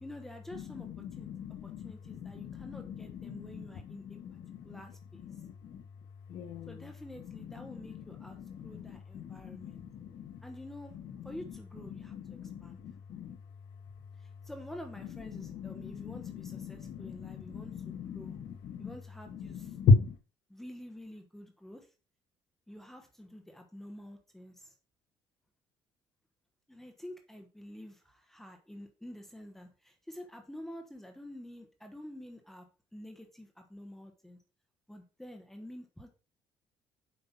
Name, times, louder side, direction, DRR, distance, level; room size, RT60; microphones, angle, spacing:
voice 1, 0.0-0.9 1.2-1.3 1.6-4.2 4.6-5.3 6.7-9.8 10.4-11.0 11.2-12.8 14.2-18.4 18.8-19.7 20.5-21.9 22.7-24.7 26.7-32.7 32.9-34.4 34.9-36.1, left 1 dB, 5° left, 4 dB, 1.1 m, -48 dB
voice 2, 0.5-4.8 5.2-5.8 6.3-10.4 10.9-13.4 13.7-14.5 15.0-18.9 19.3-20.2, left 4 dB, 55° left, 3 dB, 1.3 m, -36 dB
8.1 x 5.4 x 5.7 m, 0.33 s
cardioid pair, 170°, 9 cm